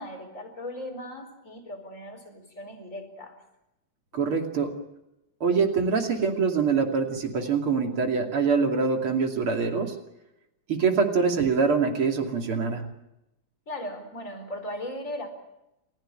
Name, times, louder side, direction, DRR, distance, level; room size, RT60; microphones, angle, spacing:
voice 1, 0.0-3.4 4.1-4.2 13.7-15.3, left 1 dB, 35° left, 5 dB, 4.8 m, -38 dB
voice 2, 4.1-4.7 5.4-9.9 10.7-12.9, right 5 dB, 85° right, 3 dB, 3.6 m, -24 dB
30.0 x 15.5 x 9.0 m, 0.89 s
omnidirectional pair, 2.3 m